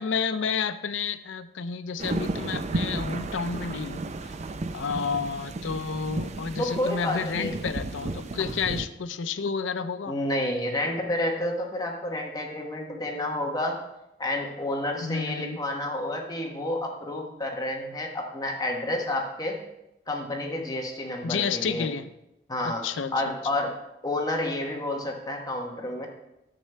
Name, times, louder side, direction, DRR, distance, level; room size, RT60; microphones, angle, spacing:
voice 1, 0.0-4.3 4.7-10.2 15.0-15.6 21.2-22.1 22.6-23.4, left 5 dB, 85° left, 13 dB, 0.5 m, -30 dB
sound 1, 2.0-8.9, right 2 dB, 40° right, 0.5 m, -33 dB
voice 2, 6.6-7.6 10.1-13.8 14.2-19.6 20.1-21.9 22.5-22.8 23.1-23.8 24.0-26.1, left 1 dB, 20° left, 1 dB, 1.1 m, -30 dB
10.0 x 7.3 x 3.3 m, 0.88 s
head